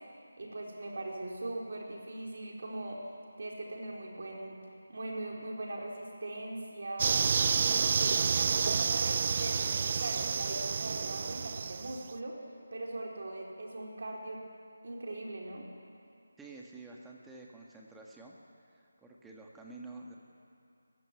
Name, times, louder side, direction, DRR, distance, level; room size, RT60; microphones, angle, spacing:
voice 1, 0.4-3.0 3.4-4.6 4.9-7.3 7.6-12.4 12.7-14.4 14.8-15.7, right 2 dB, 60° right, -1 dB, 4.5 m, -40 dB
sound 1, 7.0-12.0, right 6 dB, 35° right, 0.5 m, -29 dB
voice 2, 16.4-18.4 18.7-20.2, right 3 dB, 5° right, -2 dB, 1.6 m, -49 dB
18.5 x 15.5 x 9.9 m, 2.4 s
figure-of-eight pair, 165°, 0 cm